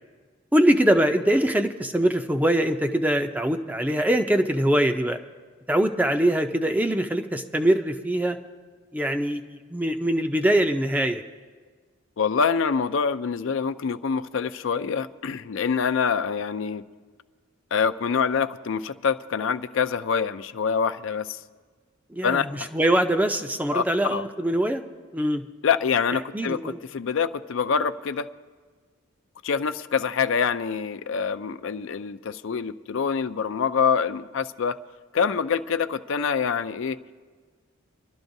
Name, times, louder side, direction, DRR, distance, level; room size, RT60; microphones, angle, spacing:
voice 1, 0.5-5.2 5.7-8.4 8.9-9.4 9.7-11.2 22.1-24.8 25.1-25.4 26.3-26.8, right 1 dB, 10° right, 6 dB, 0.5 m, -23 dB
voice 2, 12.2-16.8 17.7-21.4 22.2-22.5 23.7-24.3 25.6-28.3 29.4-34.8 35.1-37.0, left 6 dB, 60° left, 11 dB, 0.4 m, -25 dB
26.0 x 12.0 x 2.7 m, 1.5 s
head